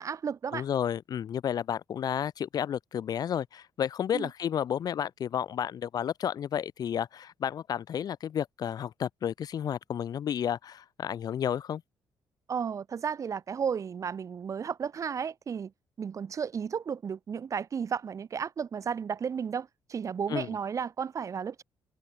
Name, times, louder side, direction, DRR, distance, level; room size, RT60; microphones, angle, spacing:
voice 1, 0.0-0.6 4.1-4.3 12.5-15.7 16.0-21.6, right 7 dB, 40° right, 1.1 m, -33 dB
voice 2, 0.5-11.8 20.3-20.5, left 9 dB, 55° left, 0.9 m, -32 dB
cardioid pair, 115°, 8 cm